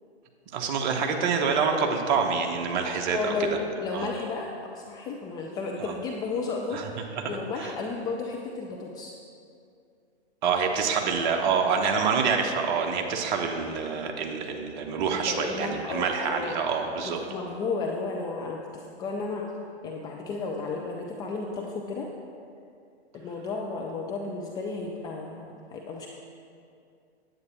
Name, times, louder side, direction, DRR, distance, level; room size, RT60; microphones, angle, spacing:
voice 1, 0.5-3.3 3.9-4.1 5.8-5.9 6.7-6.9 7.6-7.7 10.4-17.2, right 5 dB, 45° right, 3 dB, 1.2 m, -26 dB
voice 2, 3.1-3.5 3.8-9.1 11.9-12.0 15.1-16.6 17.0-19.4 19.8-22.1 23.1-26.1, left 4 dB, 10° left, -1 dB, 0.4 m, -33 dB
9.7 x 8.5 x 4.4 m, 2.4 s
hypercardioid pair, 120°, 34 cm